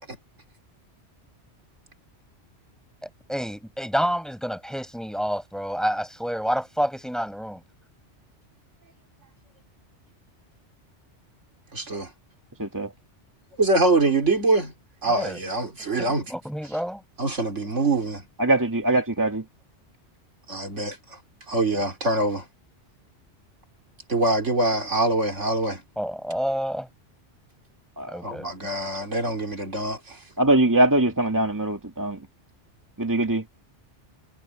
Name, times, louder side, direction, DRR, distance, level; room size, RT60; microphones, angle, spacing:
voice 1, 3.3-7.6 15.1-15.4 16.0-17.0 26.0-26.9 28.1-28.5, equal, ahead, 5.6 m, -28 dB
voice 2, 11.7-12.1 13.6-14.7 15.0-16.3 17.2-18.2 20.5-21.0 21.5-22.4 24.1-25.8 28.2-30.2, right 2 dB, 90° right, 3.8 m, -24 dB
voice 3, 12.6-12.9 18.4-19.4 28.0-28.1 30.4-32.2 33.0-33.4, right 1 dB, 15° right, 2.1 m, -22 dB
omnidirectional pair, 1.2 m